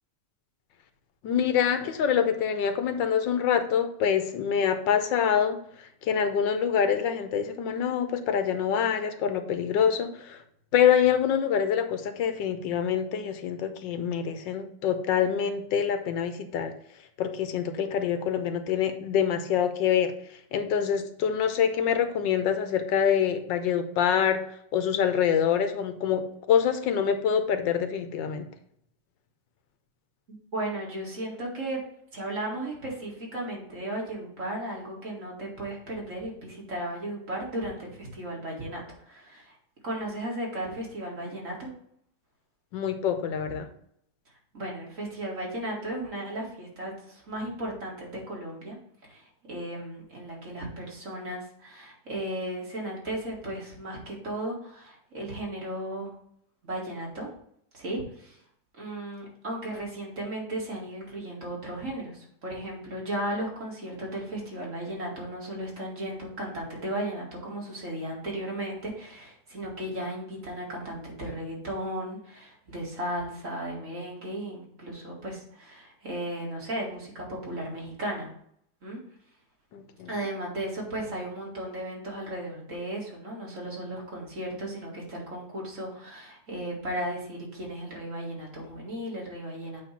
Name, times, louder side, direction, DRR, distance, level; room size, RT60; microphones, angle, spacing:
voice 1, 1.2-5.6 6.0-10.4 10.7-16.7 17.2-20.1 20.5-24.4 24.7-28.5 42.7-43.7 79.7-80.1, left 8 dB, 90° left, 9 dB, 1.5 m, -25 dB
voice 2, 30.3-31.8 32.1-39.6 39.8-41.7 44.5-48.8 49.0-56.1 56.6-57.3 57.7-58.4 58.7-78.3 78.8-79.0 80.1-89.8, right 1 dB, 45° right, -3 dB, 2.4 m, -35 dB
8.3 x 3.1 x 5.7 m, 0.68 s
omnidirectional pair, 1.9 m